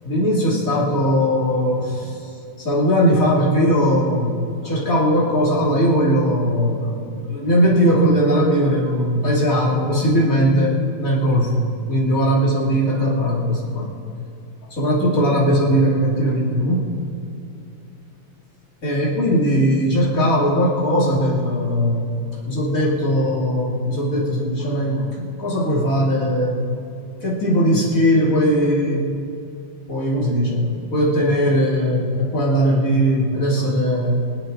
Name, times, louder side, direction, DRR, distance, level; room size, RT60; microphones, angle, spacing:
voice 1, 0.0-2.3 2.6-13.9 14.7-16.9 18.8-22.1 22.4-26.6 27.2-29.2 29.9-34.2, equal, 40° left, -5 dB, 3.3 m, -19 dB
25.5 x 8.6 x 4.0 m, 2.7 s
omnidirectional pair, 2.4 m